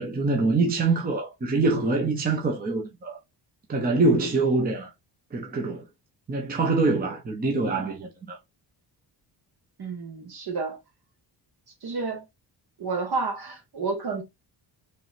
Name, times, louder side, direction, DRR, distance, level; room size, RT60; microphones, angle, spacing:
voice 1, 0.0-3.2 3.7-4.9 5.3-5.9 6.3-8.4, right 3 dB, 20° right, 0.7 m, -24 dB
voice 2, 9.8-10.8 11.8-12.2 12.8-14.2, right 4 dB, 55° right, 1.8 m, -30 dB
4.5 x 3.2 x 2.6 m
wide cardioid pair, 175°, 44 cm